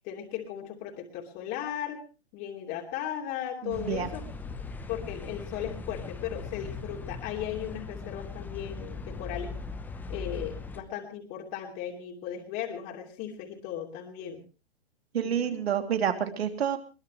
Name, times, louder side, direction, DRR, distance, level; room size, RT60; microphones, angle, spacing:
voice 1, 0.0-2.0 2.3-4.2 4.9-9.6 10.1-14.4 15.2-15.6, left 10 dB, 30° left, 1 dB, 2.8 m, -36 dB
voice 2, 3.6-4.1 15.1-16.8, right 8 dB, 65° right, 7 dB, 2.9 m, -28 dB
sound 1, 3.7-10.8, left 4 dB, 5° left, 0.8 m, -39 dB
22.0 x 19.5 x 3.2 m, 0.33 s
hypercardioid pair, 145°, 33 cm